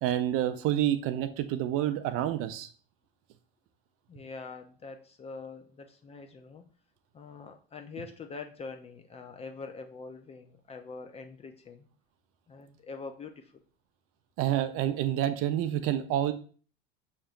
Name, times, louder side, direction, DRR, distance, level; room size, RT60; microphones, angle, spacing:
voice 1, 0.0-2.7 14.4-16.3, right 12 dB, 45° right, 11 dB, 0.5 m, -28 dB
voice 2, 4.1-6.6 7.1-11.9 12.5-13.6, left 4 dB, 20° left, 6 dB, 0.4 m, -44 dB
6.4 x 2.9 x 2.4 m, 0.41 s
hypercardioid pair, 85°, 31 cm